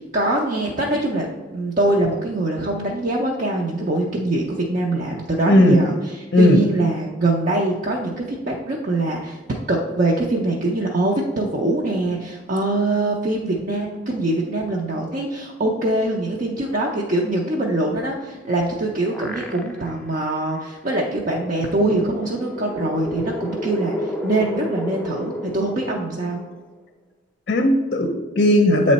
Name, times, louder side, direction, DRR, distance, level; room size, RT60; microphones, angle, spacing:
voice 1, 0.1-9.4 9.7-26.4, right 2 dB, 45° right, -2 dB, 0.6 m, -23 dB
voice 2, 5.5-5.8 6.3-6.6 27.5-28.9, left 1 dB, 50° left, 4 dB, 0.5 m, -16 dB
sound 1, 18.5-20.1 20.5-20.6 21.9-26.7, left 1 dB, 5° left, 0.5 m, -31 dB
7.6 x 3.2 x 4.0 m, 1.2 s
head